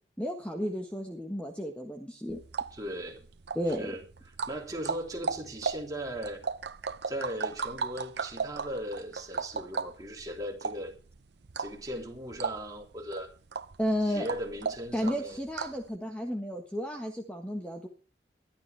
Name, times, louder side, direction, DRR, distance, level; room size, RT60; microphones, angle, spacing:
voice 1, 0.2-2.4 3.5-3.9 13.8-14.3 14.9-17.9, equal, 5° left, 2 dB, 1.5 m, -32 dB
sound 1, 2.3-15.9, right 5 dB, 65° right, 0.7 m, -37 dB
voice 2, 2.7-3.3 3.7-4.0 4.5-6.4 7.1-11.0 11.6-13.3 14.1-15.4, equal, 20° right, 0 dB, 3.5 m, -38 dB
21.5 x 12.0 x 3.4 m, 0.36 s
head